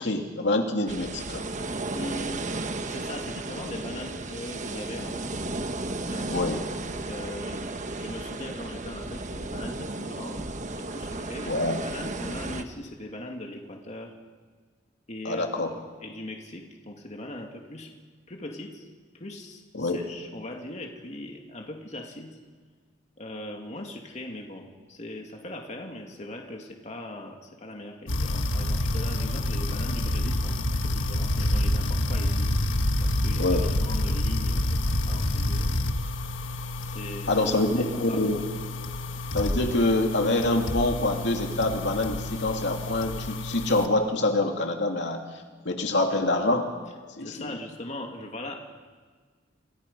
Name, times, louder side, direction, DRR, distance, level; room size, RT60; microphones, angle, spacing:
voice 1, 0.0-1.5 6.3-6.6 11.5-11.8 15.2-15.7 19.7-20.0 33.4-33.6 37.3-38.5 39.3-45.2 45.6-46.7 47.2-47.3, left 2 dB, 65° left, 3 dB, 2.5 m, -25 dB
sound 1, 0.9-12.6, right 2 dB, 40° right, 1.2 m, -34 dB
voice 2, 1.9-2.5 2.9-5.4 6.0-14.1 15.1-15.8 16.0-17.9 18.3-18.9 19.1-22.4 23.2-32.5 33.0-35.7 36.8-38.2 47.2-48.6, left 1 dB, 35° left, 2 dB, 2.4 m, -40 dB
sound 2, 28.1-43.9, left 1 dB, 80° left, 1.6 m, -28 dB
28.0 x 26.0 x 5.5 m, 1.5 s
head